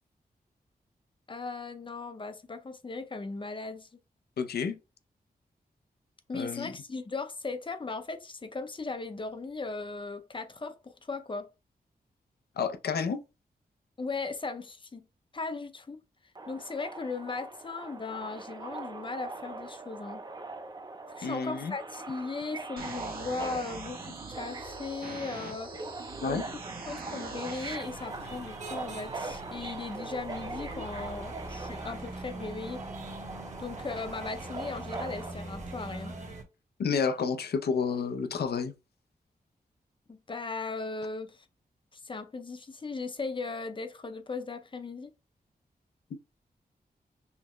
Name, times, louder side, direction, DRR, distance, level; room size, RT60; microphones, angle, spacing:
voice 1, 1.3-3.9 6.3-11.5 14.0-15.0 15.3-16.0 16.5-20.2 21.2-25.7 26.3-32.8 33.6-36.2 40.1-41.4 41.9-45.1, left 3 dB, 30° left, 0.6 m, -37 dB
voice 2, 4.4-4.8 6.3-6.7 12.6-13.2 21.2-21.7 26.2-26.4 36.8-38.7 46.1-46.2, left 5 dB, 85° left, 0.5 m, -30 dB
Subway metro underground, 16.4-35.3, right 3 dB, 25° right, 0.5 m, -42 dB
sound 1, 22.8-27.8, right 3 dB, 65° right, 1.0 m, -43 dB
sound 2, 27.8-36.4, right 2 dB, 50° right, 1.2 m, -42 dB
5.7 x 2.1 x 3.0 m
wide cardioid pair, 80°, 16 cm